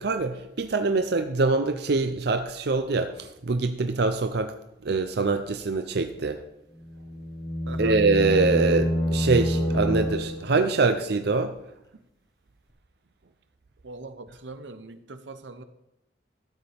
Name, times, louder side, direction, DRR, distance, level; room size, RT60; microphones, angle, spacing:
voice 1, 0.0-4.5 4.8-6.4 7.8-11.5, right 3 dB, 60° right, 8 dB, 0.6 m, -24 dB
sound 1, 6.8-10.7, equal, 20° left, 1.3 m, -27 dB
voice 2, 7.7-8.0 13.8-15.6, right 3 dB, 90° right, 10 dB, 0.8 m, -41 dB
13.0 x 9.4 x 3.5 m, 0.86 s
head